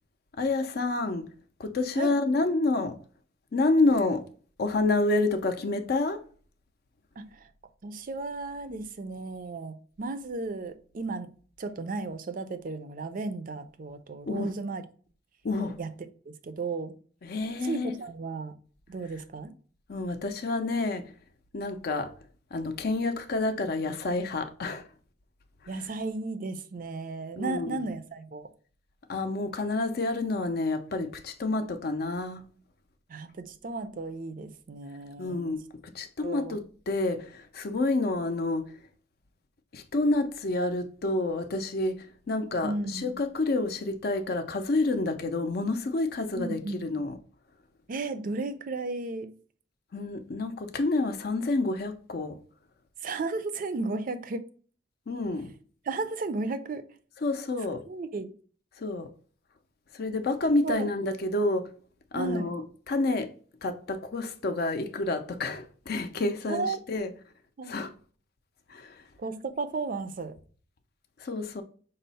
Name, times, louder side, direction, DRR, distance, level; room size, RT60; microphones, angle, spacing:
voice 1, 0.4-1.3 1.6-3.0 3.5-4.2 4.6-6.2 14.3-14.5 15.4-15.8 17.2-18.0 19.0-19.2 19.9-21.1 21.5-22.1 22.5-24.9 25.6-25.9 27.4-27.9 29.1-32.4 35.2-35.6 35.9-38.9 39.7-47.2 49.9-52.4 55.1-55.5 57.2-57.8 58.8-59.1 59.9-61.7 62.1-63.3 63.6-67.2 67.6-67.9 68.7-69.1 71.2-71.6, left 2 dB, 50° left, 0.5 m, -29 dB
voice 2, 7.2-7.5 7.8-11.3 11.6-14.8 15.8-15.9 16.3-16.9 17.6-18.6 18.9-19.5 25.7-28.5 33.1-35.4 36.2-36.6 42.6-43.1 46.4-46.9 47.9-49.3 53.0-54.5 55.9-56.8 57.9-58.3 60.6-60.9 62.1-62.5 66.5-66.8 67.6-67.8 69.2-70.4, right 3 dB, 45° right, 0.4 m, -34 dB
5.3 x 2.0 x 3.9 m
head